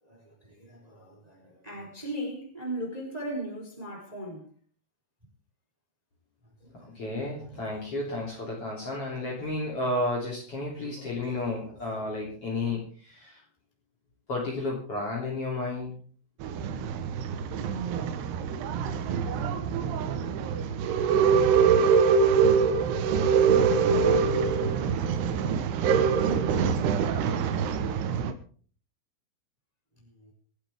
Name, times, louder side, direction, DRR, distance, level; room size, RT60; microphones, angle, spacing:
voice 1, 0.0-4.5 6.6-7.6 9.4-9.5 10.8-12.7 30.2-30.3, right 1 dB, 10° right, 3.6 m, -40 dB
voice 2, 6.7-13.4 14.3-15.9, left 2 dB, 35° left, 3.6 m, -32 dB
Male speech man speaking / Chatter / Rattle, 16.4-28.3, right 6 dB, 70° right, 3.0 m, -24 dB
26.0 x 8.7 x 3.5 m
omnidirectional pair, 5.1 m